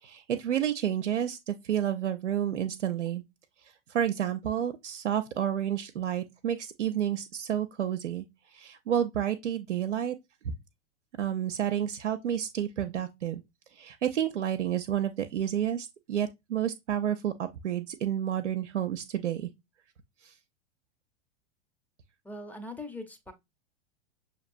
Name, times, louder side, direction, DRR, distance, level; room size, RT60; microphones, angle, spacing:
voice 1, 0.0-3.2 3.6-8.2 8.5-10.2 10.4-10.5 11.2-13.4 13.7-19.5 20.2-20.3, right 10 dB, 75° right, 0.6 m, -30 dB
voice 2, 22.2-23.3, left 2 dB, 5° left, 0.7 m, -41 dB
6.5 x 2.9 x 2.5 m
figure-of-eight pair, 100°, 36 cm